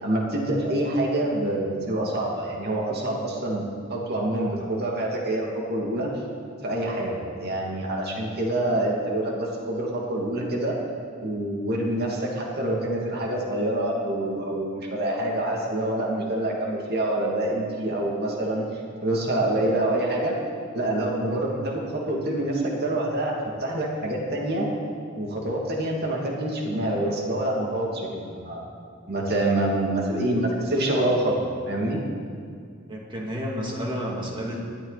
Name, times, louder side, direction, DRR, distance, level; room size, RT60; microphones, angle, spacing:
voice 1, 0.0-6.1 6.6-10.8 11.2-18.6 19.0-20.4 20.7-23.3 23.6-24.7 25.1-28.7 29.1-32.0, right 1 dB, 50° right, -2 dB, 2.5 m, -26 dB
voice 2, 32.9-34.6, equal, 25° right, -2 dB, 2.6 m, -31 dB
20.0 x 14.0 x 4.2 m, 2.2 s
head